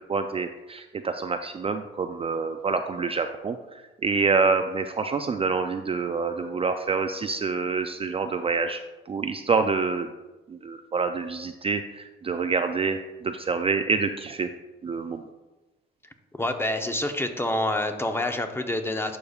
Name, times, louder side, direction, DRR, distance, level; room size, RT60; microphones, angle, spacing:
voice 1, 0.1-3.6 4.0-8.8 9.1-10.1 10.5-14.5 14.8-15.2, right 4 dB, 30° right, 7 dB, 0.4 m, -27 dB
voice 2, 16.3-19.2, left 1 dB, 10° left, 6 dB, 0.7 m, -27 dB
11.5 x 5.2 x 2.4 m, 1.1 s
cardioid pair, 90°, 20 cm